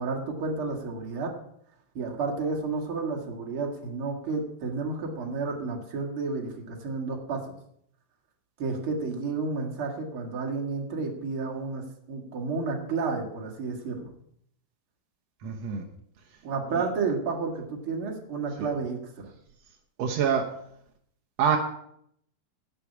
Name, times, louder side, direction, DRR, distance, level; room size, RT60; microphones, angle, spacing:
voice 1, 0.0-1.3 1.9-7.5 8.6-14.1 16.4-19.3, right 4 dB, 45° right, 1 dB, 2.3 m, -31 dB
voice 2, 15.4-15.9 18.6-18.7 20.0-20.5 21.4-21.6, right 7 dB, 75° right, 3 dB, 1.5 m, -25 dB
11.0 x 6.9 x 8.3 m, 0.70 s
omnidirectional pair, 4.3 m